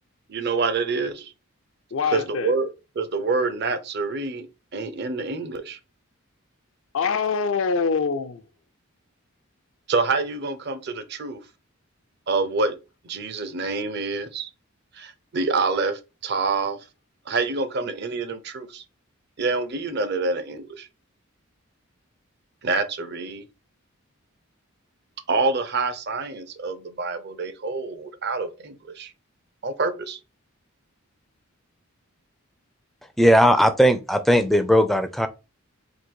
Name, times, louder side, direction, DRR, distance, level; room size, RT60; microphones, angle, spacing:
voice 1, 0.3-1.3 2.0-2.7 3.0-4.5 4.7-5.8 9.9-11.4 12.3-12.8 13.0-14.5 14.9-16.8 17.3-18.8 19.4-20.9 22.6-23.4 25.3-29.1 29.6-30.2, right 3 dB, 50° right, 0.6 m, -27 dB
voice 2, 1.9-2.5 6.9-8.4, left 5 dB, 65° left, 0.5 m, -24 dB
voice 3, 33.2-35.3, equal, ahead, 0.4 m, -18 dB
3.9 x 2.6 x 4.4 m
head